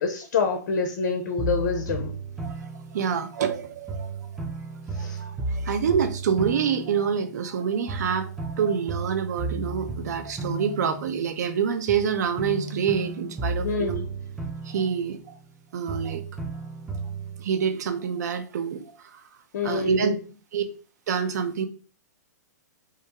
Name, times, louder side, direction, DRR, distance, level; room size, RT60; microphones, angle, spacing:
voice 1, 0.0-2.1 4.9-5.2 13.6-14.0 19.5-20.2, left 4 dB, 60° left, 4 dB, 0.4 m, -27 dB
sound 1, 1.4-3.5 3.9-7.6 7.9-11.5 11.9-15.6 15.9-17.5, right 3 dB, 5° right, 0.5 m, -34 dB
voice 2, 2.4-4.4 5.0-14.0 14.6-15.4 15.7-16.2 17.4-19.3 19.6-20.1 20.5-20.6 21.1-21.7, right 7 dB, 65° right, 9 dB, 0.4 m, -27 dB
2.3 x 2.1 x 2.8 m, 0.38 s
hypercardioid pair, 120°, 10 cm